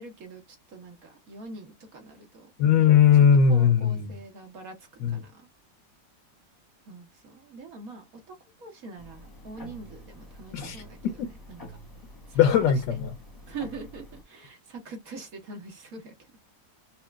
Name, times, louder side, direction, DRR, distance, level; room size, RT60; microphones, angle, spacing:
voice 1, 0.0-2.5 2.8-2.9 3.5-5.5 6.9-11.6 12.3-12.4 12.9-13.0 13.5-16.3, right 3 dB, 55° right, 1.6 m, -43 dB
voice 2, 2.6-4.1 5.0-5.2 10.5-10.8 12.3-13.1, left 7 dB, 80° left, 1.4 m, -19 dB
sound 1, 9.0-14.2, equal, 15° left, 1.1 m, -47 dB
5.6 x 2.5 x 2.3 m
omnidirectional pair, 1.9 m